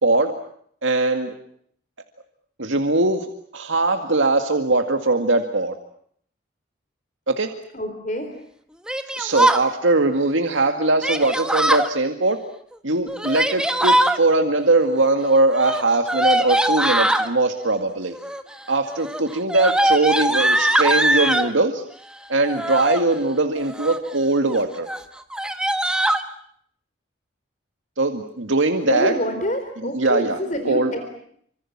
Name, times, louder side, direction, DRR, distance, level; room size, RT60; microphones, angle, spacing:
voice 1, 0.0-0.4 0.8-1.3 2.6-5.7 7.3-7.5 9.2-12.4 12.8-18.1 18.7-21.8 22.3-24.9 28.0-29.1 29.8-30.4 30.6-30.9, right 2 dB, 75° right, 5 dB, 2.1 m, -21 dB
voice 2, 7.7-8.3 28.9-31.2, equal, 40° left, 7 dB, 4.0 m, -27 dB
Yell, 8.9-9.6 11.0-11.9 13.1-14.2 15.5-17.3 18.1-18.5 18.9-21.5 22.4-23.0 23.6-24.1 24.5-24.6 24.9-25.0 25.3-26.2, right 1 dB, 5° right, 1.5 m, -21 dB
28.0 x 26.0 x 7.3 m, 0.65 s
head